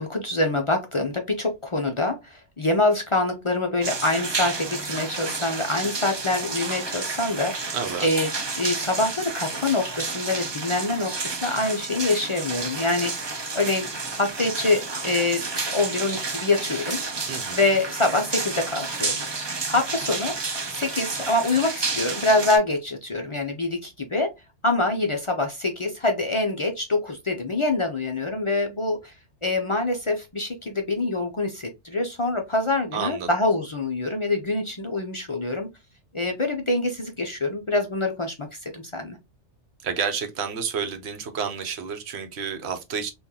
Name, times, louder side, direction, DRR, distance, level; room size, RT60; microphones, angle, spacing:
voice 1, 0.0-7.7 8.0-13.9 14.2-15.4 15.7-17.0 17.5-20.3 20.7-24.3 24.6-29.1 29.4-35.7 36.1-39.2, left 2 dB, 45° left, 0.4 m, -25 dB
sound 1, 3.8-22.6, right 4 dB, 35° right, 0.4 m, -31 dB
voice 2, 7.7-8.1 17.3-17.6 32.9-33.3 39.8-43.1, right 6 dB, 65° right, 0.9 m, -30 dB
3.7 x 2.5 x 2.8 m
omnidirectional pair, 1.2 m